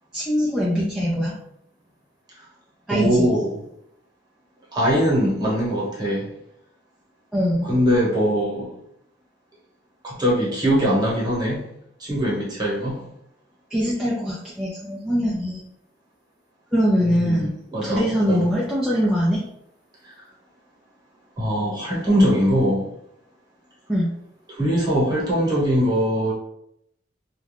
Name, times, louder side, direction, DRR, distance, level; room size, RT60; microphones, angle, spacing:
voice 1, 0.1-1.3 2.9-3.3 7.3-7.7 13.7-15.6 16.7-17.5 17.8-19.4 23.9-24.1, equal, 5° right, -7 dB, 0.4 m, -22 dB
voice 2, 2.9-3.6 4.7-6.3 7.6-8.7 10.0-11.7 12.0-13.0 17.2-18.5 21.4-22.9 24.5-26.3, equal, 25° right, -7 dB, 1.1 m, -21 dB
2.4 x 2.2 x 3.3 m, 0.75 s
head